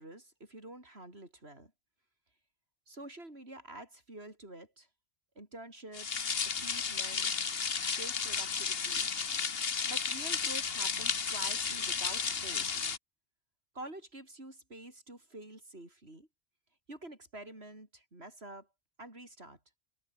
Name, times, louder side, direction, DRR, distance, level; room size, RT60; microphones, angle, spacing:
voice 1, 0.0-1.7 2.9-4.9 5.3-7.5 7.8-9.1 9.9-12.7 13.7-16.3 16.9-18.7 19.0-19.6, right 1 dB, 75° right, 6.8 m, -48 dB
sound 1, 5.9-13.0, left 6 dB, 65° left, 1.5 m, -33 dB
omnidirectional pair, 1.1 m